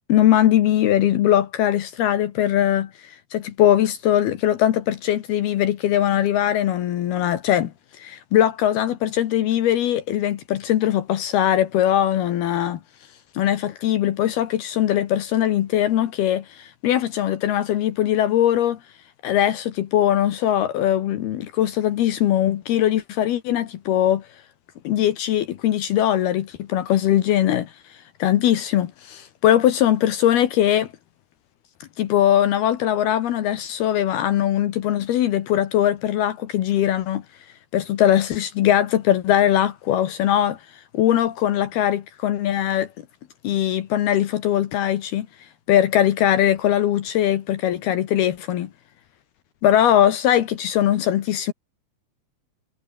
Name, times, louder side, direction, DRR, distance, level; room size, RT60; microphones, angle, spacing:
voice 1, 0.1-12.8 13.3-18.8 19.2-24.3 24.8-27.7 28.2-30.9 32.0-37.2 37.7-40.6 40.9-42.9 43.4-45.3 45.7-48.7 49.6-51.5, left 11 dB, 70° left, 3.3 m, -20 dB
omnidirectional pair, 4.8 m